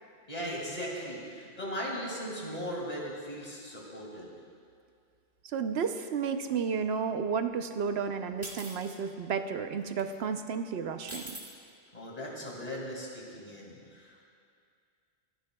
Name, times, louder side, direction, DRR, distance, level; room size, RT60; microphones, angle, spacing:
voice 1, 0.3-4.3 11.9-14.3, equal, 35° left, -3 dB, 2.4 m, -38 dB
voice 2, 5.5-11.4, right 6 dB, 75° right, 8 dB, 0.9 m, -32 dB
sound 1, 8.4-9.0 10.0-10.1 11.1-11.5, right 1 dB, 15° right, 1.3 m, -42 dB
26.5 x 11.0 x 2.3 m, 2.3 s
omnidirectional pair, 1.1 m